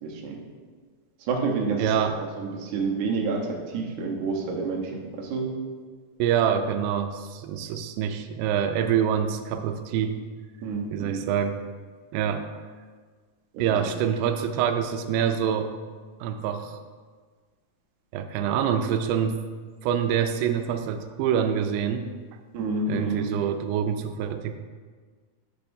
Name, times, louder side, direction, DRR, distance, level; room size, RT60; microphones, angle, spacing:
voice 1, 0.0-0.4 1.2-5.5 10.6-11.3 13.5-13.9 22.5-23.3, right 4 dB, 70° right, -1 dB, 2.0 m, -29 dB
voice 2, 1.8-2.2 6.2-10.2 10.9-11.6 12.1-12.5 13.6-15.7 16.2-16.8 18.1-19.4 19.8-22.1 22.9-24.6, right 8 dB, 90° right, 7 dB, 2.6 m, -26 dB
10.0 x 6.9 x 2.6 m, 1.5 s
omnidirectional pair, 4.6 m